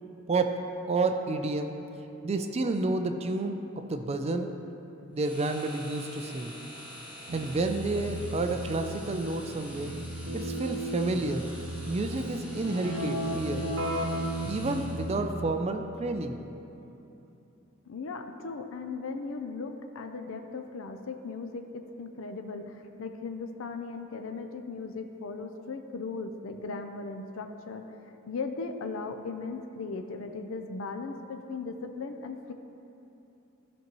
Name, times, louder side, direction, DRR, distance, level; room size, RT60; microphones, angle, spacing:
voice 1, 0.3-1.7 2.2-4.5 5.1-6.5 7.3-9.9 10.3-11.5 11.9-13.7 14.5-16.4, right 3 dB, 30° right, 6 dB, 0.4 m, -30 dB
sound 1, 5.2-15.3, equal, 5° right, 1.3 m, -47 dB
Keyboard (musical), 7.3-15.7, right 1 dB, 70° right, 0.8 m, -35 dB
voice 2, 17.9-27.9 28.3-32.5, left 4 dB, 70° left, 6 dB, 0.5 m, -37 dB
13.0 x 5.3 x 3.0 m, 2.9 s
head